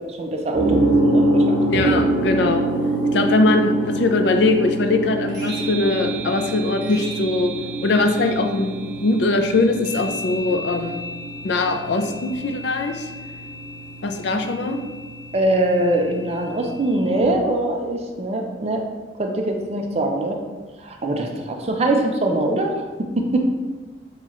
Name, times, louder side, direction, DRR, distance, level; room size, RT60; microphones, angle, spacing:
voice 1, 0.2-1.9 15.3-18.8 19.2-20.4 20.8-23.5, right 1 dB, 35° right, 3 dB, 0.4 m, -23 dB
sound 1, 0.5-17.2, right 1 dB, 60° right, 1.0 m, -25 dB
voice 2, 1.7-2.6 3.1-7.5 7.8-11.1 11.4-13.1 14.0-14.8, left 2 dB, 60° left, 5 dB, 0.4 m, -21 dB
5.6 x 2.3 x 3.0 m, 1.3 s
head